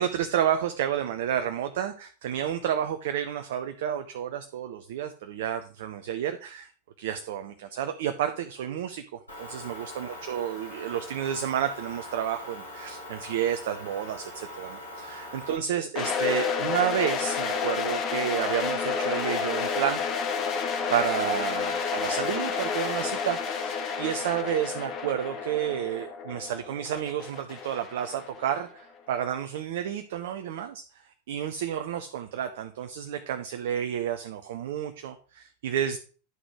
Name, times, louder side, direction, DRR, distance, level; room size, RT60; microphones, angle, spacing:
voice 1, 0.0-6.7 7.0-9.0 9.4-20.0 20.9-30.9 31.3-36.0, right 10 dB, 55° right, 8 dB, 0.6 m, -30 dB
Motor vehicle (road) / Engine, 9.3-15.6, left 1 dB, 85° left, 3.0 m, -42 dB
sound 1, 15.9-28.8, left 6 dB, 35° left, 1.4 m, -30 dB
11.0 x 4.0 x 4.7 m, 0.38 s
figure-of-eight pair, 90°, 0 cm